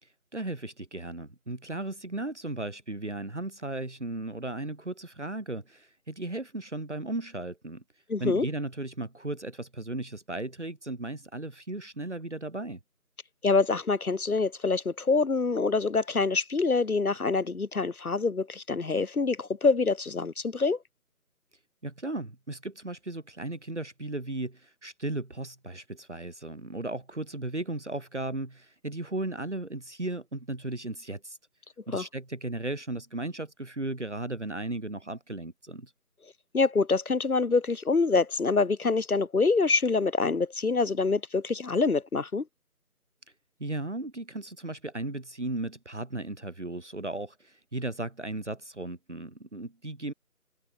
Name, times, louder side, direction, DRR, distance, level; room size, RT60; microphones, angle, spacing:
voice 1, 0.0-7.8 8.2-12.8 21.8-31.4 31.9-35.9 43.6-50.1, right 2 dB, 50° right, 2.9 m, -36 dB
voice 2, 8.1-8.5 13.4-20.8 31.9-32.0 36.5-42.4, left 4 dB, 70° left, 1.1 m, -25 dB
figure-of-eight pair, 175°, 45 cm